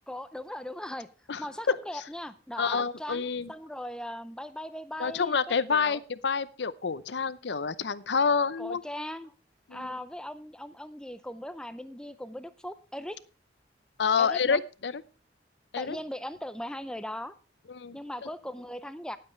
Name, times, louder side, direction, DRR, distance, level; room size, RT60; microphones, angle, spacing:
voice 1, 0.1-1.1 1.4-6.0 8.6-9.3 9.7-13.2 14.2-14.6 15.8-17.3 17.9-19.2, left 1 dB, 5° left, 12 dB, 0.6 m, -39 dB
voice 2, 1.3-2.0 2.6-3.5 5.0-8.8 9.7-9.9 14.0-15.0 15.7-16.0 17.7-18.3, left 5 dB, 80° left, 16 dB, 0.7 m, -28 dB
19.0 x 7.7 x 3.2 m, 0.34 s
head